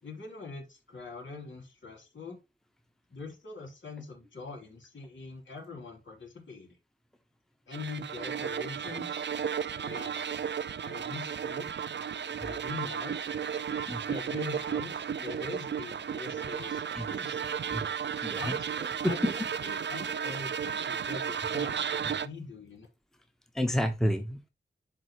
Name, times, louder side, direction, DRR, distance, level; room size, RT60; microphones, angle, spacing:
voice 1, 0.0-2.4 3.1-6.8 7.7-9.2 9.7-10.2 10.8-11.7 12.4-13.2 14.0-16.8 17.1-17.4 18.3-22.9, left 4 dB, 75° left, 3.2 m, -43 dB
sound 1, 7.7-22.3, right 7 dB, 65° right, 0.5 m, -34 dB
voice 2, 18.2-18.5 23.5-24.5, equal, ahead, 1.0 m, -30 dB
11.0 x 3.8 x 3.0 m
wide cardioid pair, 75°, 20 cm